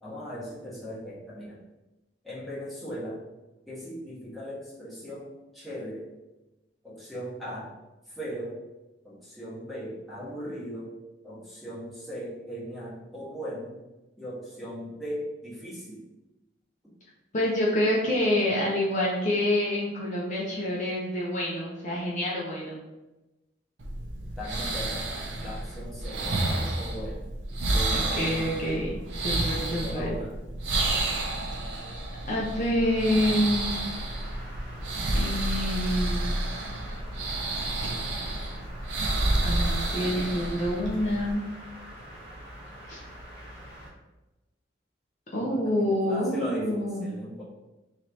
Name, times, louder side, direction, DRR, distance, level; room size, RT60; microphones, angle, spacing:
voice 1, 0.0-1.6 2.2-3.2 3.7-5.3 5.5-6.1 6.8-7.7 8.0-8.6 9.0-10.9 11.2-13.7 14.2-16.0 24.4-25.1 25.4-27.2 27.7-28.5 29.8-30.3 45.3-47.4, equal, ahead, -10 dB, 1.4 m, -38 dB
voice 2, 17.3-22.8 27.9-30.2 32.3-33.9 35.1-36.4 39.4-41.5 42.9-43.0 45.3-47.1, left 1 dB, 45° left, -5 dB, 0.8 m, -27 dB
sound 1, 23.8-41.3, right 2 dB, 80° right, 0.7 m, -30 dB
sound 2, 32.8-43.9, equal, 30° right, 1.1 m, -45 dB
3.1 x 3.1 x 4.0 m, 1.0 s
head